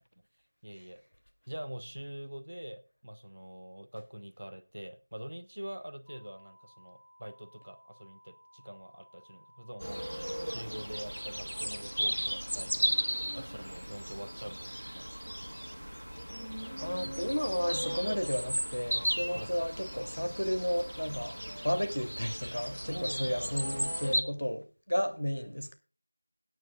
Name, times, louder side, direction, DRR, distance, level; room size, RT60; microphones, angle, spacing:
voice 1, 0.6-1.0 1.5-10.1 10.4-12.9 13.3-15.3 19.3-19.7 22.9-23.5, equal, 35° right, 0.9 m, -44 dB
sound 1, 6.1-21.7, equal, 5° left, 2.6 m, -59 dB
sound 2, 9.8-24.2, equal, 85° right, 1.6 m, -36 dB
voice 2, 16.8-21.4 21.6-25.7, equal, 90° left, 2.9 m, -33 dB
21.5 x 9.4 x 2.4 m
figure-of-eight pair, 180°, 0 cm